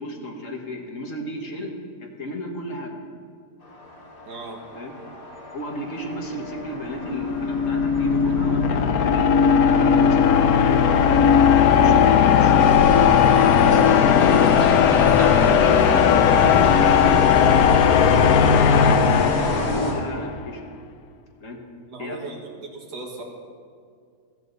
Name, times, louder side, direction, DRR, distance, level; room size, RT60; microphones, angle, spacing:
voice 1, 0.0-1.7 2.0-3.0 4.7-4.9 5.5-10.8 11.1-11.3 11.7-12.6 13.0-17.1 17.5-20.6 21.4-21.6 22.0-22.2, left 1 dB, 50° left, 2 dB, 1.8 m, -33 dB
sound 1, 3.6-20.4, left 1 dB, 85° left, 3.3 m, -30 dB
voice 2, 4.3-4.6 21.9-23.2, right 3 dB, 80° right, -1 dB, 2.3 m, -37 dB
sound 2, 7.0-20.2, left 8 dB, 70° left, 1.1 m, -17 dB
sound 3, 12.6-19.7, right 1 dB, 50° right, 2.3 m, -29 dB
16.0 x 14.0 x 4.0 m, 2.2 s
omnidirectional pair, 1.7 m